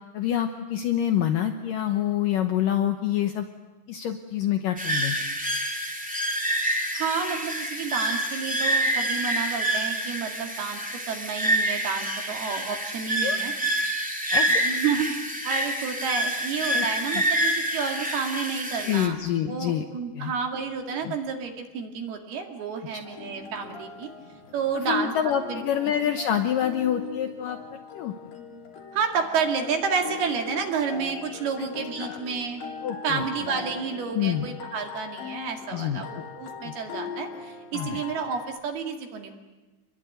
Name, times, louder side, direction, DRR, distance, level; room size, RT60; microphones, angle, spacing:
voice 1, 0.1-3.5 3.9-5.2 13.2-13.4 14.3-14.6 16.7-16.9 17.1-17.2 18.9-19.8 20.2-20.3 21.1-21.2 24.7-28.2 31.6-31.7 32.0-32.2 32.8-33.2 34.1-34.5 35.7-36.0 36.6-36.7 37.7-38.0, left 10 dB, 90° left, 7 dB, 1.9 m, -27 dB
sound 1, 4.8-19.1, right 1 dB, 5° right, 0.8 m, -27 dB
voice 2, 6.9-13.5 14.6-19.2 19.5-24.1 24.5-25.1 25.5-25.9 28.9-32.6 33.0-39.4, right 6 dB, 60° right, 4 dB, 3.8 m, -30 dB
sound 2, 23.0-38.6, left 6 dB, 50° left, 4.7 m, -41 dB
28.0 x 22.0 x 9.3 m, 1.2 s
omnidirectional pair, 5.5 m